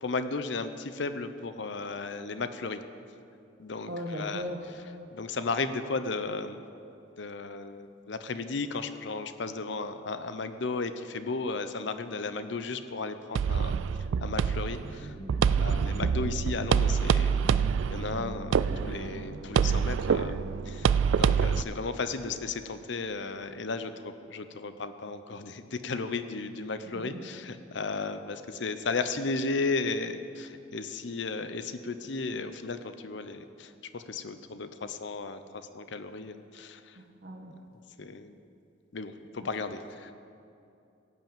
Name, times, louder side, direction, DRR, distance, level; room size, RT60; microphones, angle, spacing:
voice 1, 0.0-2.8 3.6-4.4 5.1-6.6 7.2-13.8 14.2-15.2 15.6-37.0 38.0-38.4 38.9-40.1, left 3 dB, 60° left, 10 dB, 0.7 m, -35 dB
voice 2, 3.9-4.6 26.8-27.3 36.9-37.6 39.4-39.5, equal, 50° right, 2 dB, 1.6 m, -38 dB
sound 1, 13.4-21.6, right 7 dB, 75° right, 0.3 m, -26 dB
sound 2, 14.8-21.5, equal, 20° left, 1.6 m, -44 dB
16.5 x 5.8 x 8.9 m, 2.6 s
head